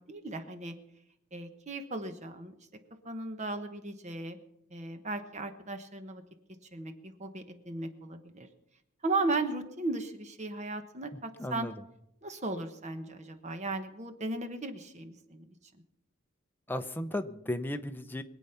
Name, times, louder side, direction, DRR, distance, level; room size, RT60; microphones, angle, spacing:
voice 1, 0.1-0.8 1.3-2.5 3.0-4.4 4.7-6.2 6.7-8.5 9.0-11.7 12.2-15.5, right 2 dB, 35° right, 8 dB, 1.0 m, -36 dB
voice 2, 11.4-11.7 16.7-18.2, left 1 dB, 10° left, 8 dB, 0.7 m, -35 dB
23.0 x 8.4 x 5.7 m, 0.82 s
head